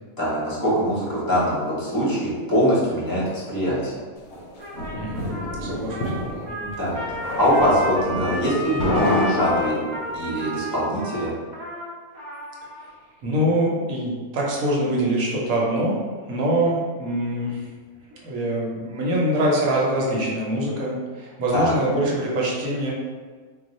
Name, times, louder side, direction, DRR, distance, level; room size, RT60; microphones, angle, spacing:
voice 1, 0.2-3.9 6.6-7.0 7.4-9.8 10.1-11.3 21.5-21.7, equal, 20° left, -7 dB, 0.6 m, -23 dB
sound 1, 4.3-10.2, left 1 dB, 65° left, 0.8 m, -28 dB
Trumpet, 4.6-12.9, left 1 dB, 45° right, 0.6 m, -32 dB
voice 2, 4.9-5.3 5.6-6.5 7.0-7.1 13.2-17.6 18.2-22.9, right 1 dB, 75° right, -3 dB, 1.1 m, -24 dB
2.3 x 2.3 x 3.9 m, 1.5 s
omnidirectional pair, 1.5 m